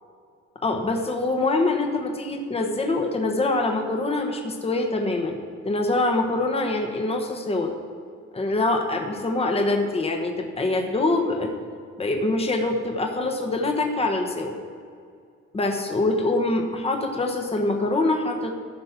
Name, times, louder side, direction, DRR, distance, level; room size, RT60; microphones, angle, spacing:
voice 1, 0.6-5.4 5.6-7.7 8.3-11.5 12.0-14.6 15.5-18.5, left 2 dB, 20° left, 3 dB, 1.1 m, -24 dB
14.0 x 5.2 x 5.9 m, 2.3 s
cardioid pair, 90°, 30 cm